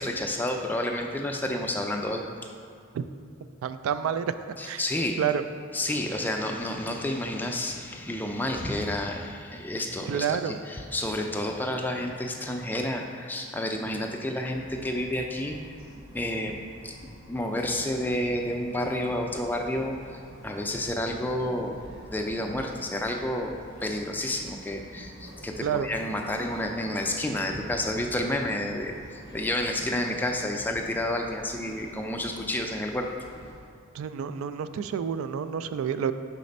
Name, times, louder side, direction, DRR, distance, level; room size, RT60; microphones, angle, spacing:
voice 1, 0.0-2.2 4.6-5.2 5.7-15.6 16.1-20.0 20.4-33.1, left 1 dB, 10° left, 2 dB, 0.4 m, -30 dB
voice 2, 3.6-4.3 4.6-4.8 5.2-5.4 10.1-10.6 25.6-25.9 33.9-36.1, right 8 dB, 90° right, 13 dB, 0.3 m, -29 dB
Bird vocalization bird call bird song, 14.5-33.6, equal, 45° right, 1.6 m, -48 dB
5.8 x 4.2 x 5.3 m, 2.3 s
head